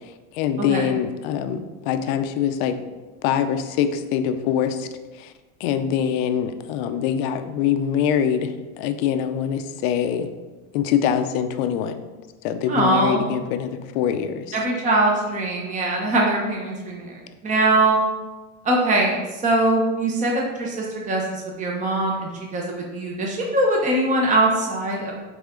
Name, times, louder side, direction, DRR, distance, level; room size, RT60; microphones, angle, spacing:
voice 1, 0.3-2.8 3.2-4.9 5.2-5.3 5.6-8.5 8.8-10.3 10.7-12.0 12.4-14.6, left 8 dB, 55° left, 8 dB, 0.7 m, -24 dB
voice 2, 12.7-13.3 14.5-17.1 17.4-18.0 18.6-19.2 19.4-25.1, right 2 dB, 15° right, -1 dB, 0.9 m, -22 dB
8.3 x 3.5 x 3.8 m, 1.2 s
supercardioid pair, 130°, 44 cm